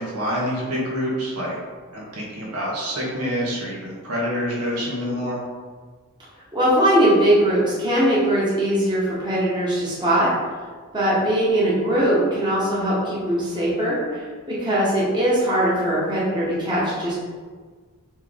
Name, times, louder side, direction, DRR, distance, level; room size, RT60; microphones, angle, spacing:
voice 1, 0.0-1.6 1.9-5.4, equal, 90° right, -4 dB, 1.4 m, -27 dB
voice 2, 6.5-10.3 10.9-17.1, right 1 dB, 20° right, -8 dB, 1.2 m, -20 dB
4.6 x 3.3 x 3.6 m, 1.5 s
head